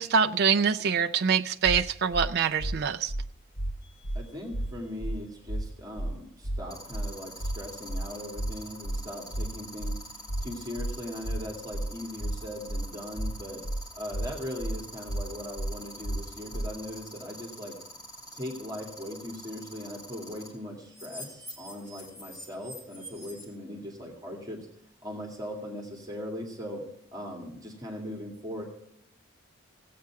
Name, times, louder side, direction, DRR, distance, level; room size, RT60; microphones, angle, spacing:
voice 1, 0.0-3.1, right 6 dB, 50° right, 8 dB, 0.4 m, -25 dB
sound 1, 1.6-1.8 2.1-2.3 2.6-2.8 3.1-3.2 3.6-3.7 4.0-4.2 4.5-4.7 5.0-5.2 5.5-5.6 6.0-6.1 6.4-6.6 6.9-7.1 7.4-7.6 7.9-8.0 8.4-8.5 8.8-9.0 9.3-9.5 9.8-10.0 10.3-10.4 10.8-10.9 11.2-11.4 11.7-11.9 12.2-12.4 12.7-12.8 13.2-13.3 13.6-13.8 14.1-14.3 14.6-14.8 15.1-15.2 15.6-15.7 16.0-16.2 16.5-16.7, right 1 dB, 80° left, 3.5 m, -31 dB
sound 2, 3.8-4.1 6.7-20.5 20.9-23.5, equal, 20° left, 3.1 m, -44 dB
voice 2, 4.1-10.0 10.4-13.6 14.0-17.8 18.3-24.7 25.0-26.8 27.1-28.6, left 1 dB, 20° right, 0 dB, 2.2 m, -39 dB
16.5 x 8.5 x 4.6 m, 0.77 s
head